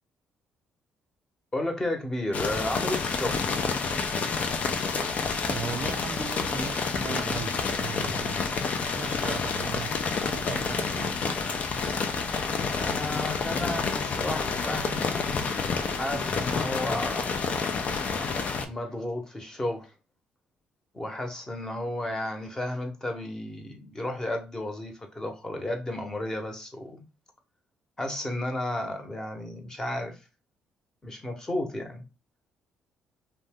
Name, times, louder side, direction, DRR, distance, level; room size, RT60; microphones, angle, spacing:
voice 1, 1.5-3.4 12.7-15.2 16.0-17.3 18.7-19.9 20.9-27.1 28.0-30.2 31.0-32.0, left 1 dB, 20° left, 0.9 m, -33 dB
sound 1, 2.3-18.6, left 4 dB, 55° left, 0.5 m, -29 dB
voice 2, 5.5-8.5 8.9-9.9 10.3-11.2, right 7 dB, 45° right, 0.3 m, -38 dB
2.6 x 2.2 x 3.4 m
supercardioid pair, 65°, 3 cm